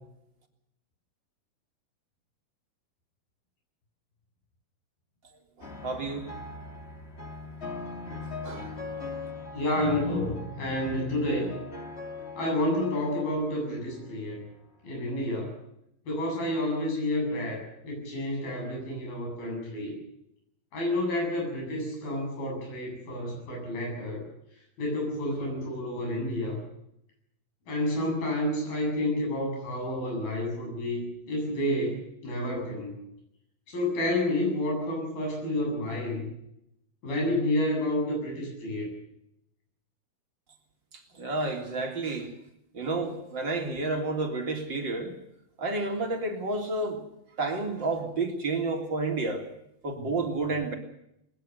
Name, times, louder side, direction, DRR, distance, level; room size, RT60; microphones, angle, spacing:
sound 1, 5.6-14.2 15.0-15.5, left 3 dB, 20° left, 2.3 m, -41 dB
voice 1, 5.6-6.3 8.4-8.7 41.1-42.3 42.7-45.2 45.6-47.0 47.4-49.5 49.8-50.8, right 3 dB, 30° right, 4 dB, 3.7 m, -30 dB
voice 2, 9.5-11.5 12.4-14.4 14.8-15.5 16.1-19.9 20.7-24.2 24.8-26.6 27.7-33.0 33.7-36.2 37.0-38.9, left 1 dB, 75° left, 0 dB, 9.9 m, -30 dB
21.5 x 21.5 x 6.8 m, 0.79 s
omnidirectional pair, 4.2 m